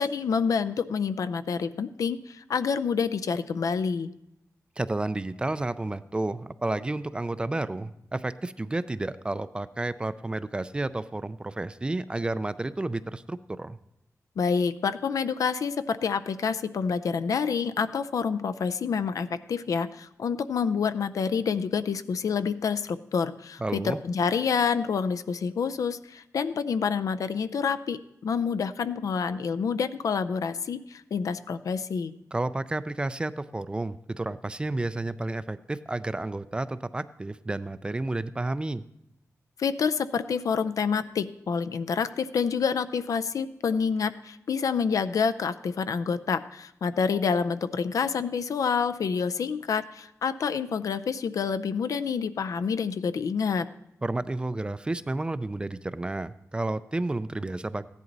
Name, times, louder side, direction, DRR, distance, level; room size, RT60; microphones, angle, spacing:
voice 1, 0.0-4.1 14.4-32.1 39.6-53.7, left 6 dB, 80° left, 11 dB, 0.5 m, -28 dB
voice 2, 4.8-13.8 23.6-24.0 32.3-38.8 54.0-57.9, right 2 dB, 15° right, 14 dB, 0.3 m, -31 dB
15.5 x 10.5 x 4.0 m, 0.81 s
wide cardioid pair, 175°, 6 cm